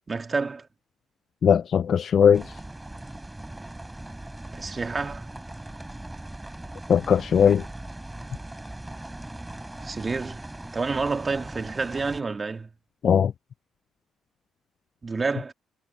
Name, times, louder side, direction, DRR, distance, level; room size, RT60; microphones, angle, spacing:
voice 1, 0.1-0.7 4.5-5.3 9.8-10.4 10.7-12.7 15.0-15.5, right 4 dB, 30° right, 2.5 m, -29 dB
voice 2, 1.4-2.5 6.9-7.6 13.0-13.3, left 7 dB, 55° left, 0.4 m, -19 dB
sound 1, 2.3-12.2, right 1 dB, 10° right, 6.9 m, -40 dB
cardioid pair, 90°, 0 cm